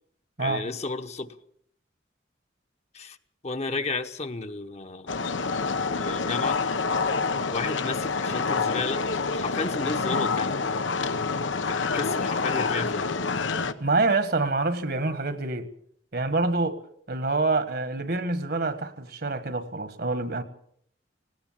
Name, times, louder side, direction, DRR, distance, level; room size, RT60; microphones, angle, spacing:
voice 1, 0.4-1.3 2.9-3.2 3.4-5.2 5.9-6.6 7.5-9.0 9.3-10.6 11.7-13.1, left 3 dB, 35° left, 1.1 m, -32 dB
sound 1, 5.1-13.7, left 4 dB, 85° left, 1.1 m, -27 dB
voice 2, 13.8-15.7 16.1-16.8 17.1-20.4, right 3 dB, 55° right, 1.6 m, -26 dB
19.0 x 18.5 x 7.4 m
head